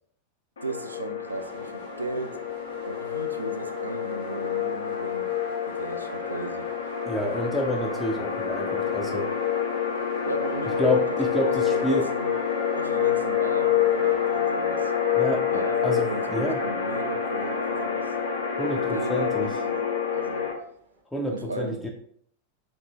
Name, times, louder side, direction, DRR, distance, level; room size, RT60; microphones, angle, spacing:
sound 1, 0.6-20.5, left 8 dB, 70° left, 0.5 m, -27 dB
voice 1, 0.6-2.4 2.8-5.4 5.7-6.7 10.3-11.0 11.5-12.4 12.7-14.9 15.5-18.2 18.7-20.6 21.3-21.8, right 3 dB, 80° right, 0.3 m, -35 dB
sound 2, 1.3-21.0, right 3 dB, 60° right, 0.7 m, -48 dB
voice 2, 7.0-9.3 10.8-12.1 15.1-16.6 18.6-19.5 21.1-21.9, equal, 5° left, 0.4 m, -28 dB
3.5 x 2.5 x 3.0 m
figure-of-eight pair, 90°, 0 cm